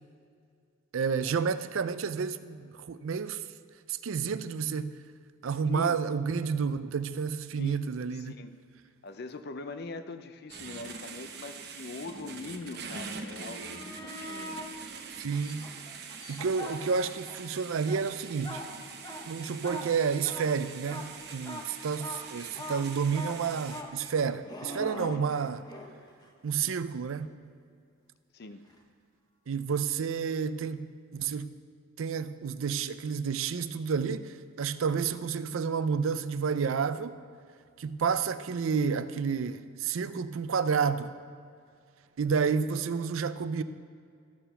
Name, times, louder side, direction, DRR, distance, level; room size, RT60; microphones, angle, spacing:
voice 1, 0.9-3.4 3.9-4.9 5.4-8.3 15.2-15.7 16.3-18.6 19.3-25.6 26.4-27.3 29.5-30.9 31.1-31.5 32.0-37.2 37.8-41.1 42.2-43.6, right 6 dB, 70° right, 0.4 m, -30 dB
voice 2, 5.7-6.0 7.6-7.8 8.1-8.6 9.0-14.6 24.8-25.2 28.3-28.6, left 3 dB, 50° left, 0.5 m, -42 dB
sound 1, 10.5-23.8, right 5 dB, 50° right, 0.9 m, -44 dB
sound 2, 13.5-14.7 15.3-17.4 17.7-25.9 28.7-28.8, left 1 dB, 20° left, 0.9 m, -42 dB
13.0 x 6.8 x 5.6 m
head